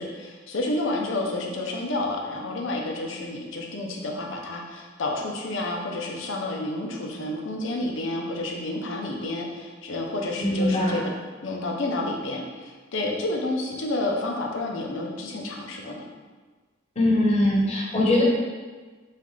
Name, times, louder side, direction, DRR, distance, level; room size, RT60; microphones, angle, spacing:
voice 1, 0.0-11.1 11.4-16.1, left 2 dB, 75° left, 1 dB, 0.6 m, -30 dB
voice 2, 10.4-11.0 17.0-18.2, left 1 dB, 35° left, -3 dB, 0.9 m, -21 dB
5.6 x 2.5 x 3.2 m, 1.4 s
head